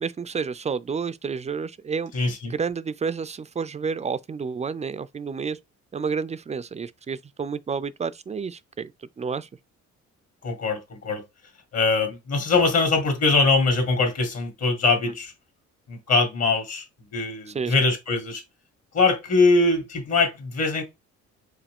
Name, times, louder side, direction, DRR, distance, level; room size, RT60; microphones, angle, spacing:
voice 1, 0.0-2.1 2.5-5.6 5.9-9.5 17.5-17.7, right 5 dB, 25° right, 0.3 m, -30 dB
voice 2, 2.1-2.5 10.4-11.2 11.7-15.3 15.9-16.8 17.1-18.4 18.9-20.8, left 3 dB, 55° left, 2.0 m, -22 dB
4.8 x 2.7 x 3.5 m
cardioid pair, 90°, 30 cm